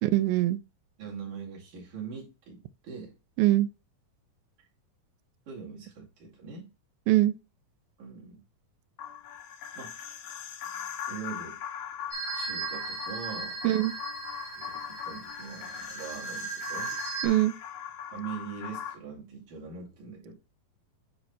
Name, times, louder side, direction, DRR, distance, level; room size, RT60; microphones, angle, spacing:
voice 1, 0.0-0.6 3.4-3.7 7.1-7.3 13.6-13.9 17.2-17.5, right 16 dB, 90° right, 2.4 m, -22 dB
voice 2, 1.0-3.1 5.5-6.7 8.0-8.4 9.8-9.9 11.1-11.6 12.3-13.6 14.6-17.0 18.1-20.3, right 6 dB, 60° right, 3.8 m, -42 dB
sound 1, 9.0-19.0, left 9 dB, 75° left, 1.9 m, -40 dB
sound 2, 12.1-17.3, right 5 dB, 15° right, 1.5 m, -37 dB
9.7 x 3.3 x 4.1 m
omnidirectional pair, 4.1 m